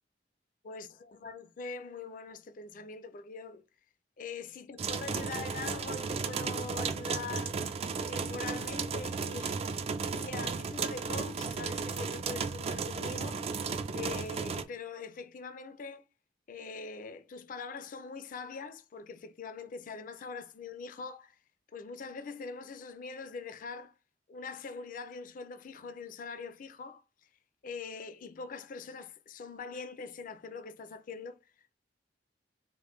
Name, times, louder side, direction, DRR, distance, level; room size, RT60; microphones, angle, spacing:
voice 1, 0.6-3.6 4.2-7.5 8.0-9.8 10.1-13.4 13.9-16.0 16.5-21.4 21.7-23.9 24.3-27.0 27.6-31.4, left 4 dB, 50° left, 0.4 m, -43 dB
sound 1, 4.8-14.6, right 5 dB, 35° right, 0.3 m, -34 dB
5.0 x 2.1 x 3.1 m
head